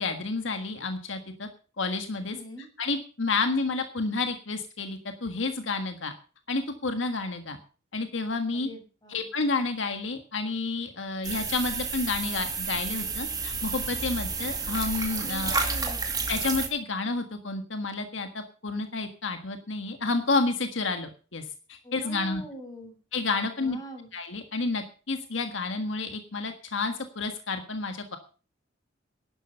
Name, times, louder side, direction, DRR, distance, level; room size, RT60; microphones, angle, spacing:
voice 1, 0.0-1.5 1.8-2.4 2.8-6.1 6.5-7.6 7.9-8.7 9.1-15.8 16.3-21.4 21.7-22.4 23.1-23.8 24.1-28.2, left 3 dB, 75° left, 7 dB, 1.6 m, -30 dB
voice 2, 2.3-2.7 8.5-9.3 15.2-16.0 21.8-22.9 23.6-24.1, equal, 20° left, 3 dB, 6.1 m, -43 dB
sound 1, 11.2-16.7, right 4 dB, 20° right, 2.2 m, -31 dB
11.5 x 11.0 x 6.8 m, 0.38 s
head